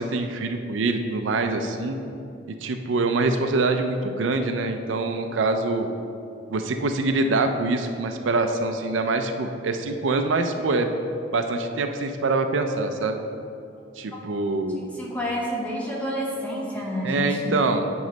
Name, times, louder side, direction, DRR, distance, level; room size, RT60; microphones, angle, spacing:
voice 1, 0.0-2.0 2.6-5.9 6.5-10.9 11.3-13.2 14.0-14.9 17.0-17.9, right 3 dB, 80° right, 6 dB, 0.4 m, -24 dB
voice 2, 14.9-17.6, equal, 10° left, -5 dB, 1.3 m, -29 dB
9.1 x 3.1 x 5.1 m, 2.6 s
head